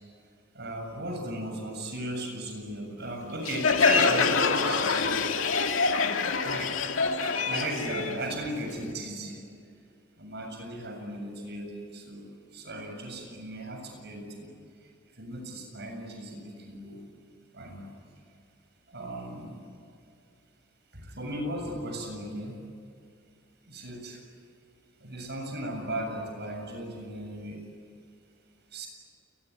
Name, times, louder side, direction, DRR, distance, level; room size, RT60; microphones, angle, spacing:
voice 1, 0.5-5.2 6.4-9.4 10.2-12.2 12.5-14.5 15.2-17.0 17.5-17.9 18.9-19.6 20.9-22.6 23.7-24.2 25.0-27.6 28.7-28.9, right 1 dB, 60° right, 4 dB, 7.5 m, -36 dB
Crowd, 3.5-8.9, left 4 dB, 85° left, 2.1 m, -25 dB
29.0 x 21.5 x 9.4 m, 2.3 s
head